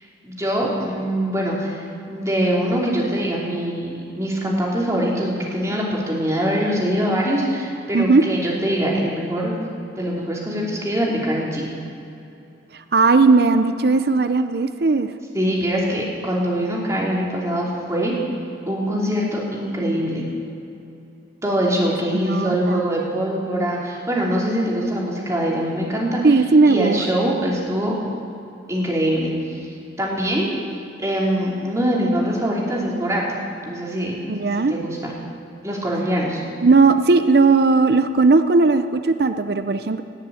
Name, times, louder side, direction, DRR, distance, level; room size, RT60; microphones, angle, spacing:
voice 1, 0.2-9.5 10.0-11.7 15.3-18.1 18.7-20.2 21.4-26.2 26.6-27.9 28.7-29.6 30.0-30.5 31.0-33.2 33.6-34.1 34.7-35.1 35.6-36.4, equal, 15° right, -4 dB, 3.0 m, -23 dB
voice 2, 12.7-15.1 22.1-22.8 26.2-27.0 34.3-34.7 36.6-40.0, right 3 dB, 60° right, 10 dB, 0.6 m, -17 dB
18.0 x 7.2 x 8.9 m, 2.7 s
head